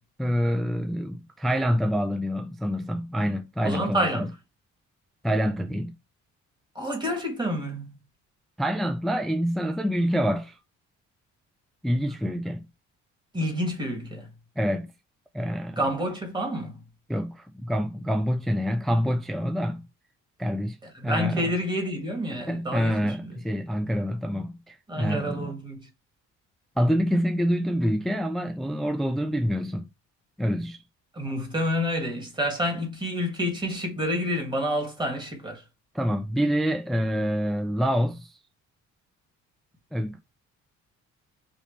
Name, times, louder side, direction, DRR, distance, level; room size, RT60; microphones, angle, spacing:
voice 1, 0.2-4.3 5.2-5.9 8.6-10.6 11.8-12.7 14.6-14.9 15.3-15.8 17.1-19.8 20.4-20.8 21.0-21.6 22.3-25.5 26.8-29.9 30.4-30.8 35.9-38.4 39.9-40.2, equal, ahead, 0.4 m, -26 dB
voice 2, 3.6-4.3 6.8-7.9 13.3-14.3 15.8-16.8 21.0-22.9 24.9-25.9 31.2-35.6, equal, 15° right, 2.0 m, -28 dB
4.8 x 2.7 x 3.3 m
cardioid pair, 90°, 30 cm